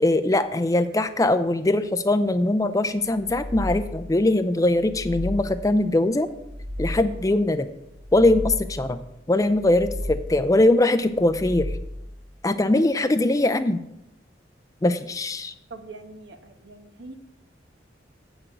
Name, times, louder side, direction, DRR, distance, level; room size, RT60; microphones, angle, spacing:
voice 1, 0.0-6.3 6.8-7.7 8.1-9.0 9.3-11.8 12.4-13.8 14.8-15.5, left 2 dB, 20° left, 11 dB, 0.4 m, -21 dB
sound 1, 3.1-4.2 4.7-5.8 6.3-7.4 7.9-9.0 9.5-10.5 11.1-12.2, left 1 dB, 30° right, 1.0 m, -34 dB
voice 2, 15.7-17.2, right 3 dB, 75° right, 7 dB, 1.1 m, -42 dB
8.0 x 6.1 x 7.7 m, 0.85 s
head